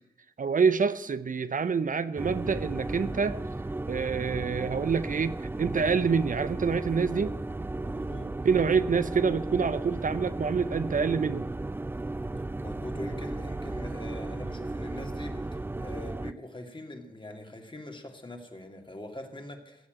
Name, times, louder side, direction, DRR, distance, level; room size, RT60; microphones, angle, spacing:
voice 1, 0.4-3.4 3.9-7.4 8.4-11.5, right 5 dB, 60° right, 13 dB, 0.6 m, -27 dB
sound 1, 2.2-16.3, right 2 dB, 15° right, 0.4 m, -35 dB
voice 2, 7.7-8.6 12.6-19.9, left 1 dB, 30° left, 4 dB, 2.4 m, -43 dB
14.5 x 7.3 x 8.9 m, 0.97 s
cardioid pair, 45°, 16 cm